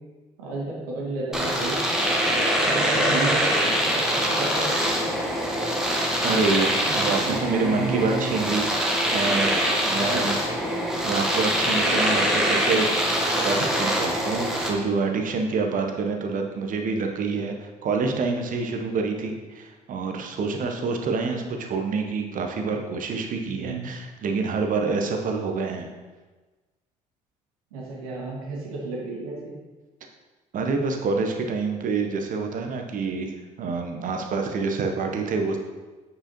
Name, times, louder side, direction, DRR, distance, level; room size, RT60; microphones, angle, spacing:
voice 1, 0.4-1.8 2.7-4.9 6.9-8.3 10.0-10.2 23.5-23.9 27.7-29.5, right 3 dB, 70° right, -4 dB, 1.9 m, -32 dB
Domestic sounds home sounds, 1.3-14.7, equal, 5° right, 1.4 m, -24 dB
voice 2, 6.2-9.5 9.8-10.4 11.0-17.5 17.8-25.9 30.5-35.6, right 4 dB, 45° right, 3 dB, 1.0 m, -27 dB
8.8 x 4.8 x 3.0 m, 1.3 s
figure-of-eight pair, 55°, 20 cm